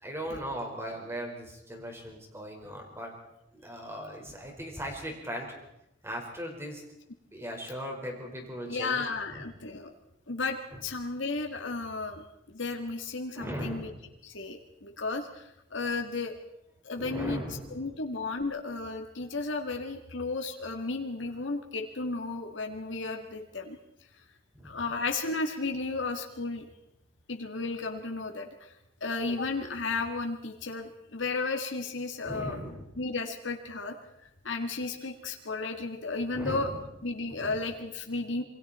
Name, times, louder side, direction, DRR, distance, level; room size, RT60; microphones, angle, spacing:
voice 1, 0.0-3.1 3.5-5.5 6.0-6.8 7.3-9.5 13.3-14.0 17.0-17.9 24.5-24.8 32.2-32.9 36.3-36.8 37.3-37.6, equal, 15° right, 1 dB, 4.9 m, -38 dB
voice 2, 8.7-9.9 10.3-13.9 14.2-16.3 16.8-17.4 17.7-23.8 24.6-26.6 27.3-28.7 29.0-32.6 33.0-34.0 34.4-36.7 37.0-38.4, left 3 dB, 90° left, 3 dB, 2.0 m, -33 dB
27.5 x 22.5 x 4.3 m, 0.82 s
head